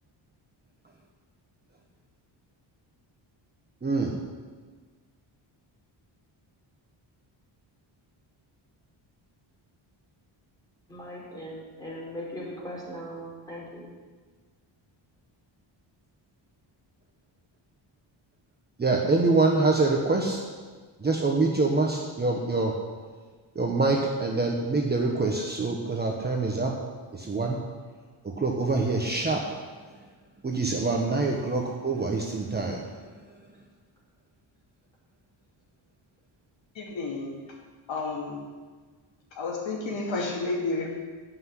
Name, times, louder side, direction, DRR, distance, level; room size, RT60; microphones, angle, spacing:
voice 1, 3.8-4.1 18.8-20.4 21.0-22.7 23.5-26.7 27.1-27.6 28.2-29.4 30.4-32.8, right 3 dB, 20° right, 0 dB, 1.2 m, -25 dB
voice 2, 10.9-13.8, equal, 10° left, -5 dB, 4.7 m, -39 dB
voice 3, 36.8-37.4 37.9-38.5 39.4-40.9, left 3 dB, 65° left, -1 dB, 2.7 m, -31 dB
15.5 x 6.1 x 9.7 m, 1.5 s
wide cardioid pair, 175°, 48 cm